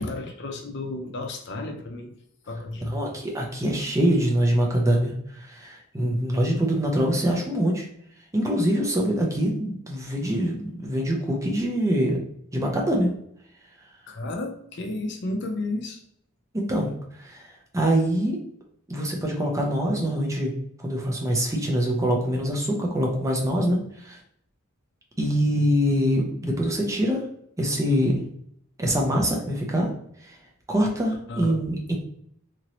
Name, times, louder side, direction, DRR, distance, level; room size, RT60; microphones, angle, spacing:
voice 1, 0.0-2.1 2.5-3.0 14.1-16.0 31.3-31.6, left 2 dB, 55° left, 3 dB, 0.5 m, -32 dB
voice 2, 2.9-7.9 8.3-12.2 12.5-13.1 16.5-16.9 17.2-18.4 18.9-20.5 20.8-24.2 25.2-27.2 27.6-28.2 28.8-29.9 30.2-30.4 30.7-31.9, equal, 15° right, -1 dB, 0.5 m, -24 dB
2.9 x 2.7 x 2.9 m, 0.69 s
head